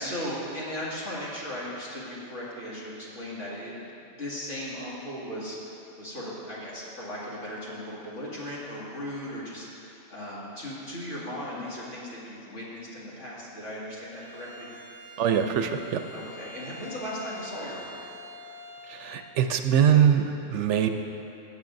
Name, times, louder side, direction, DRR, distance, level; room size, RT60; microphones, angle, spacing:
voice 1, 0.0-14.7 16.1-18.0, equal, 70° left, -8 dB, 2.5 m, -37 dB
Bowed string instrument, 14.1-19.4, left 1 dB, 20° right, 0.7 m, -46 dB
voice 2, 15.2-16.0 18.9-20.9, right 8 dB, 75° right, 7 dB, 0.8 m, -23 dB
16.0 x 7.8 x 2.6 m, 2.8 s
omnidirectional pair, 1.3 m